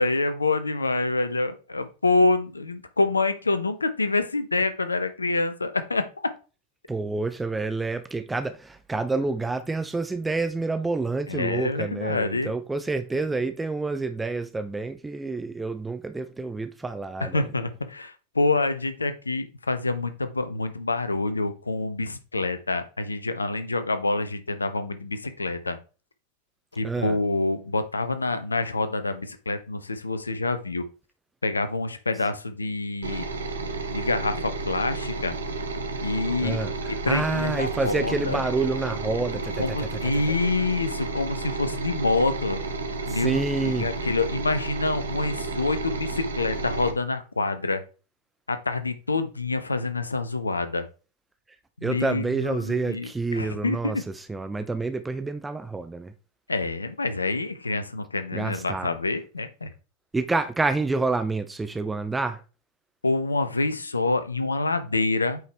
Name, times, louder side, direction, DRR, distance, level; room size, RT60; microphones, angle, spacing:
voice 1, 0.0-6.0 11.3-12.5 17.2-25.8 26.7-30.8 31.4-33.3 33.9-35.3 36.0-36.6 37.0-38.4 39.6-42.6 43.1-47.8 48.5-50.8 51.8-54.0 56.5-59.7 63.0-65.4, left 3 dB, 80° left, 0.8 m, -27 dB
voice 2, 6.9-17.4 26.8-27.2 36.4-40.3 43.1-43.9 51.8-56.1 58.3-58.9 60.1-62.4, right 3 dB, 10° right, 0.5 m, -28 dB
sound 1, 33.0-46.9, right 3 dB, 70° right, 0.9 m, -32 dB
8.1 x 4.7 x 3.3 m
figure-of-eight pair, 90°, 0 cm